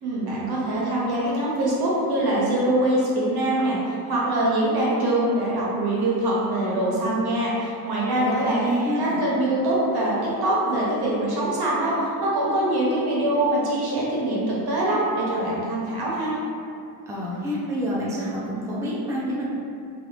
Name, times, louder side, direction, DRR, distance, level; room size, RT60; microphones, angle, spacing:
voice 1, 0.0-8.6 9.0-16.3, right 1 dB, 60° right, -6 dB, 1.1 m, -23 dB
voice 2, 8.1-9.2 17.1-19.5, equal, 5° right, -6 dB, 0.5 m, -27 dB
3.0 x 2.5 x 3.2 m, 2.5 s
cardioid pair, 90°, 43 cm